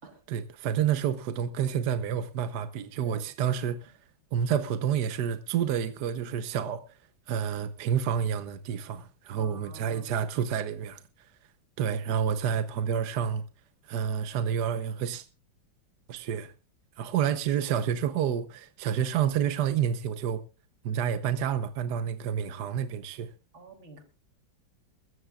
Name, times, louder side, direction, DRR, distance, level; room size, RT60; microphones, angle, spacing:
voice 1, 0.3-3.9 4.3-6.8 7.3-11.0 11.8-13.4 13.9-15.3 16.1-16.5 17.0-20.4 20.8-23.3, right 8 dB, 65° right, 1.3 m, -29 dB
voice 2, 3.1-3.5 9.3-10.1 23.5-24.0, right 3 dB, 85° right, 3.9 m, -48 dB
23.0 x 14.0 x 2.3 m
omnidirectional pair, 2.1 m